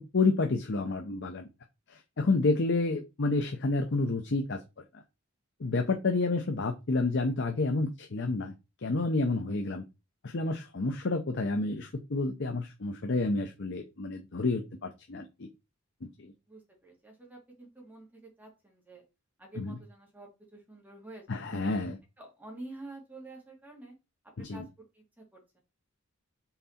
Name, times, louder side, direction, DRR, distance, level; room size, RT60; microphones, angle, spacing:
voice 1, 0.0-1.5 1.9-4.6 4.9-5.0 5.6-8.5 8.8-9.8 10.2-15.5 16.0-16.3 19.6-19.8 21.3-22.0 24.4-24.6, left 3 dB, 55° left, 5 dB, 0.7 m, -29 dB
voice 2, 16.5-19.0 19.4-21.7 22.2-23.9 24.5-25.6, right 2 dB, 10° right, -2 dB, 2.5 m, -49 dB
5.8 x 4.0 x 4.3 m, 0.26 s
head